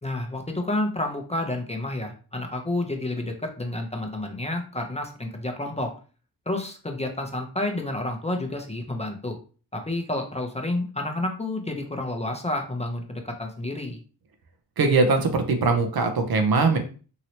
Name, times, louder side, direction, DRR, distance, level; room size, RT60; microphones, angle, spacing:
voice 1, 0.0-5.9 6.5-9.4 9.7-14.0, left 1 dB, 15° left, 2 dB, 0.7 m, -30 dB
voice 2, 14.8-16.8, right 3 dB, 50° right, 5 dB, 0.7 m, -21 dB
2.9 x 2.8 x 2.8 m, 0.38 s
cardioid pair, 65°, 46 cm